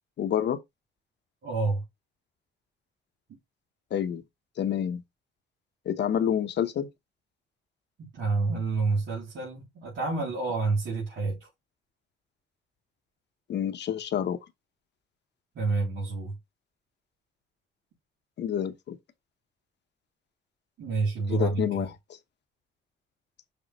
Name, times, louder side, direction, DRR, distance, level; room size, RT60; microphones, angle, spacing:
voice 1, 0.2-0.6 3.9-4.2 4.6-5.0 5.8-6.9 13.5-14.4 18.4-19.0 21.3-21.9, left 9 dB, 60° left, 1.0 m, -28 dB
voice 2, 1.4-1.8 3.3-3.4 8.0-11.5 15.6-16.3 20.8-21.9, right 3 dB, 70° right, 3.7 m, -29 dB
6.8 x 5.4 x 3.1 m
cardioid pair, 90°, 20 cm